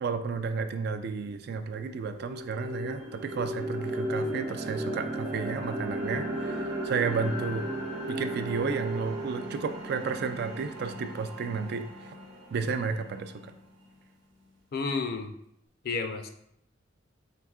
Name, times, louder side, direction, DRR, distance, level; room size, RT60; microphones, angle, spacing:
voice 1, 0.0-7.7 8.1-12.1 12.5-13.5, right 5 dB, 55° right, 9 dB, 0.3 m, -32 dB
sound 1, 1.2-1.3 1.7-13.8, right 1 dB, 85° right, 0.9 m, -36 dB
voice 2, 14.7-15.3 15.8-16.3, left 4 dB, 50° left, 6 dB, 0.4 m, -31 dB
4.7 x 3.5 x 2.3 m, 0.74 s
head